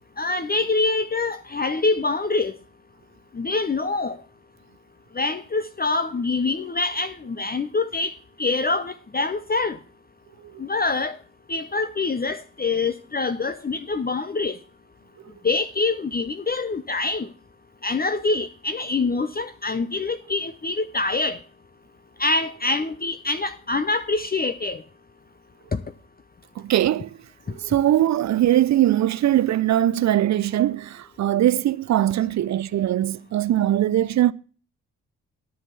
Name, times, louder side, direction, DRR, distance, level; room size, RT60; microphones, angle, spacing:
voice 1, 0.2-2.6 3.3-4.2 5.2-8.1 8.4-9.8 10.6-11.2 11.5-14.6 15.4-17.3 17.8-21.4 22.2-24.8 25.7-25.8, left 3 dB, 25° left, 0.8 m, -25 dB
voice 2, 26.6-27.1 27.6-34.3, right 12 dB, 45° right, 0.6 m, -21 dB
10.0 x 6.3 x 7.1 m
hypercardioid pair, 45°, 38 cm